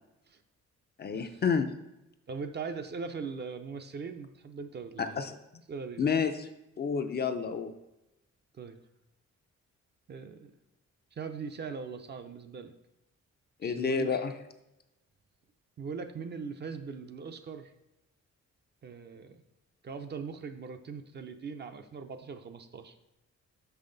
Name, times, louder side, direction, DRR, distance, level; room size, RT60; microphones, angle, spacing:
voice 1, 1.0-1.7 5.0-5.4 6.0-6.5 6.8-7.7 13.6-14.3, left 6 dB, 35° left, 8 dB, 0.4 m, -29 dB
voice 2, 2.3-5.2 5.7-6.2 8.5-8.8 10.1-10.5 11.1-12.7 13.6-14.1 15.8-17.7 18.8-19.4 19.8-23.0, right 5 dB, 35° right, 7 dB, 0.5 m, -40 dB
6.4 x 5.6 x 3.8 m, 0.92 s
wide cardioid pair, 145°, 29 cm